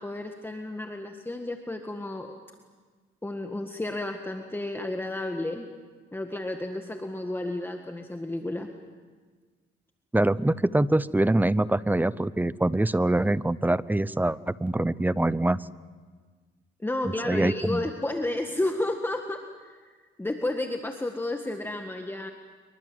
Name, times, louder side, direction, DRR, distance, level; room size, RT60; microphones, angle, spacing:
voice 1, 0.0-2.3 3.2-5.7 6.1-8.7 16.8-19.9 20.2-22.3, left 2 dB, 10° left, 4 dB, 1.7 m, -32 dB
voice 2, 10.1-15.6 17.2-17.8, right 1 dB, 10° right, 18 dB, 0.7 m, -24 dB
26.0 x 24.0 x 7.9 m, 1.5 s
cardioid pair, 90°, 20 cm